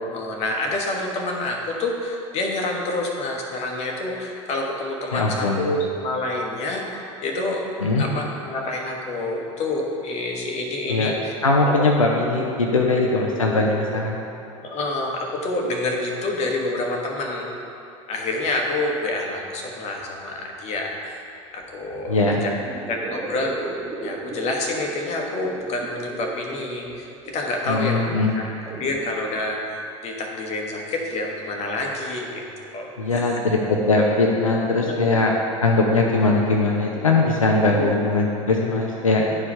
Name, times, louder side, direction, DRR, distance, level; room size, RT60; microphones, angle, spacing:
voice 1, 0.0-7.7 8.0-11.3 11.6-11.9 12.2-13.1 13.4-13.7 14.6-17.6 18.1-20.9 21.5-22.5 22.9-23.7 24.0-28.1 28.3-28.5 28.8-29.6 30.0-32.5 32.7-33.3 34.8-35.2 37.7-38.3, left 2 dB, 40° left, 0 dB, 1.1 m, -28 dB
voice 2, 5.1-5.6 7.8-8.0 10.9-11.1 11.4-14.2 22.1-22.4 27.7-28.4 33.0-39.3, left 2 dB, 80° left, -1 dB, 0.6 m, -20 dB
sound 1, 21.6-21.7 21.9-29.0, right 3 dB, 20° right, 0.9 m, -37 dB
10.5 x 4.7 x 3.4 m, 2.7 s
figure-of-eight pair, 70°, 17 cm